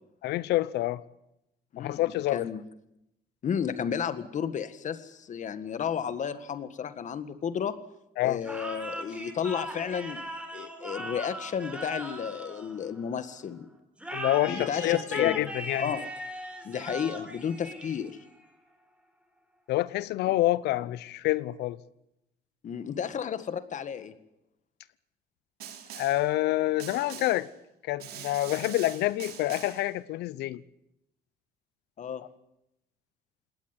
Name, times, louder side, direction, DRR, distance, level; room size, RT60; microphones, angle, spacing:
voice 1, 0.2-1.0 1.8-2.5 8.2-8.4 14.1-15.9 19.7-21.8 25.9-27.5 27.9-30.6, left 16 dB, 80° left, 0.8 m, -27 dB
voice 2, 1.7-2.0 2.3-2.6 3.4-7.8 8.2-10.2 10.5-13.7 14.5-15.4 15.8-16.1 16.6-18.2 22.6-24.1 32.0-32.2, left 7 dB, 45° left, 1.8 m, -32 dB
sound 1, 8.4-13.2 14.0-18.4, right 1 dB, 5° right, 4.2 m, -39 dB
Snare drum, 25.6-26.3 26.8-27.5 28.0-29.9, right 9 dB, 70° right, 3.2 m, -43 dB
20.0 x 18.5 x 9.9 m
cardioid pair, 110°, 17 cm